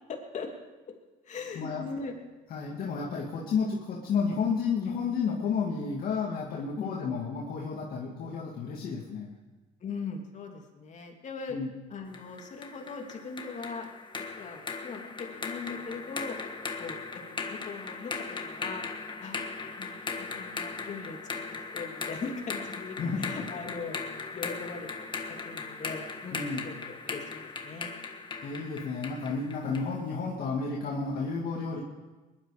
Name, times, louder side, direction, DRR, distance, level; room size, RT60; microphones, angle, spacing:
voice 1, 0.1-0.5 1.3-2.2 6.7-7.0 9.8-11.6 11.9-13.9 14.3-16.4 16.8-17.0 17.3-18.9 19.2-21.2 21.7-24.0 24.3-25.1 25.4-27.9, left 4 dB, 45° left, 2 dB, 2.7 m, -40 dB
voice 2, 1.5-1.9 2.5-9.3 11.5-11.7 23.0-23.5 26.3-26.7 28.4-31.8, left 5 dB, 60° left, -3 dB, 2.3 m, -31 dB
sound 1, 12.1-29.9, left 4 dB, 30° left, 1.6 m, -38 dB
20.5 x 11.5 x 5.0 m, 1.2 s
cardioid pair, 110°, 17 cm